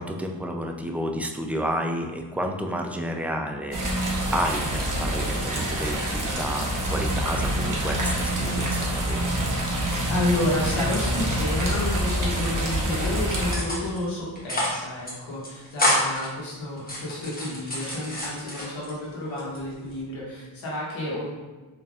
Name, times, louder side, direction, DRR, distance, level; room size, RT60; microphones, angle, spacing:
voice 1, 0.0-9.3, equal, 5° right, 3 dB, 0.3 m, -31 dB
sound 1, 3.7-13.6, right 1 dB, 45° right, 1.0 m, -26 dB
voice 2, 10.1-21.3, left 1 dB, 90° left, -5 dB, 1.1 m, -30 dB
sound 2, 10.2-11.2 11.5-12.4 12.8-13.1 13.5-14.0 14.3-14.8 15.0-15.1 15.4-16.3 16.8-19.0 19.4-20.0, left 1 dB, 20° left, 1.3 m, -29 dB
4.1 x 3.2 x 2.4 m, 1.3 s
cardioid pair, 55°, 46 cm